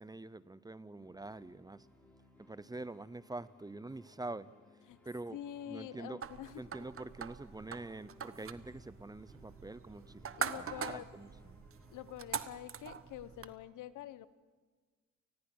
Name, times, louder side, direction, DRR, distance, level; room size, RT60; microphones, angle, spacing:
voice 1, 0.0-1.9 2.4-4.5 5.0-5.4 5.7-6.2 6.6-11.6, right 2 dB, 15° right, 0.7 m, -45 dB
sound 1, 1.0-12.2, left 1 dB, 5° left, 6.3 m, -63 dB
voice 2, 5.3-6.9 10.4-11.1 11.9-14.3, left 12 dB, 80° left, 1.0 m, -46 dB
sound 2, 6.2-13.5, right 7 dB, 45° right, 1.1 m, -43 dB
29.0 x 20.0 x 6.2 m
cardioid pair, 90°, 30 cm